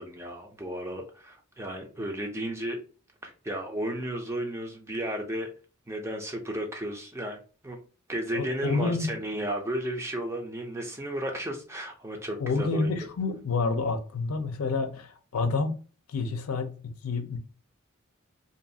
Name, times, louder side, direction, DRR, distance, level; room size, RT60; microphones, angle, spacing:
voice 1, 0.0-2.8 3.2-5.5 5.9-7.8 8.1-13.0, right 1 dB, 15° right, 0.5 m, -34 dB
voice 2, 8.3-9.1 12.4-15.7 16.1-17.4, left 4 dB, 90° left, 0.5 m, -29 dB
2.6 x 2.4 x 2.7 m
head